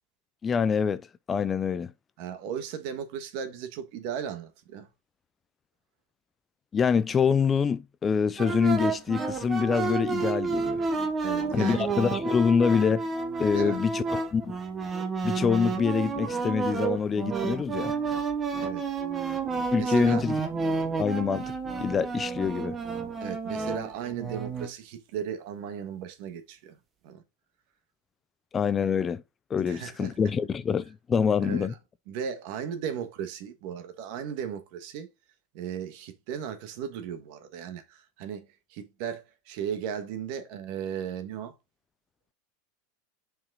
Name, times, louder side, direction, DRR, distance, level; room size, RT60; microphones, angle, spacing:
voice 1, 0.4-1.9 6.7-10.8 11.5-13.1 13.4-14.0 14.3-14.6 15.2-17.9 19.7-20.4 21.0-21.5 21.8-22.8 28.5-29.2 29.5-31.7, left 6 dB, 15° left, 0.3 m, -25 dB
voice 2, 2.2-4.9 11.2-11.9 13.5-13.8 18.6-18.9 19.7-20.2 23.2-26.8 27.0-27.2 29.6-30.1 31.4-31.7 32.1-35.1 35.5-41.5, right 8 dB, 50° right, 1.4 m, -36 dB
sound 1, 8.4-24.7, right 4 dB, 15° right, 1.0 m, -30 dB
5.9 x 5.1 x 3.7 m
supercardioid pair, 160°, 0 cm